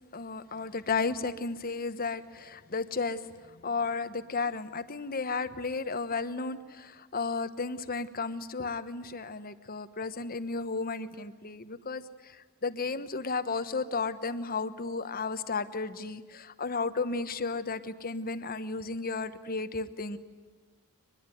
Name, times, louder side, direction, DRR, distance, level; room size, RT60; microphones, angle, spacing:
voice 1, 0.1-20.2, left 4 dB, 45° left, 11 dB, 1.2 m, -33 dB
23.5 x 21.5 x 9.3 m, 1.4 s
head